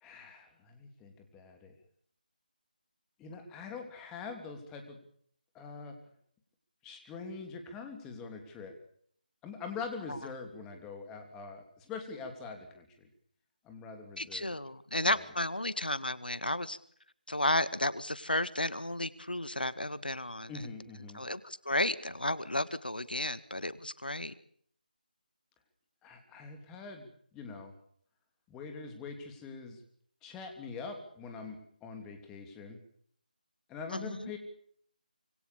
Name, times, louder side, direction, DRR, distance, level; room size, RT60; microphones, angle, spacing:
voice 1, 0.0-1.7 3.2-5.0 5.5-6.0 6.8-8.7 9.4-13.1 13.6-14.6 15.0-15.2 20.5-21.2 26.0-27.7 28.5-29.8 30.2-32.8 33.7-34.4, left 4 dB, 10° left, 5 dB, 3.0 m, -44 dB
voice 2, 14.2-16.8 17.3-20.5 21.1-24.3 33.9-34.3, left 1 dB, 80° left, 15 dB, 1.8 m, -33 dB
26.0 x 23.5 x 7.0 m, 0.63 s
figure-of-eight pair, 160°, 5 cm